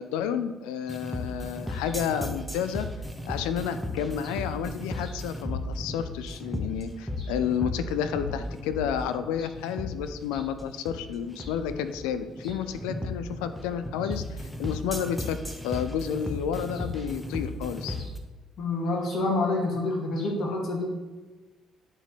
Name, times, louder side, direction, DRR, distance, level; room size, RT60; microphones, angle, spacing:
voice 1, 0.0-2.9 3.3-15.4 15.6-18.0, left 8 dB, 85° left, 11 dB, 0.3 m, -31 dB
sound 1, 0.9-18.2, left 1 dB, ahead, 1.0 m, -35 dB
voice 2, 18.6-20.9, left 2 dB, 60° left, 0 dB, 1.7 m, -28 dB
9.8 x 4.1 x 3.1 m, 1.2 s
hypercardioid pair, 55°, 0 cm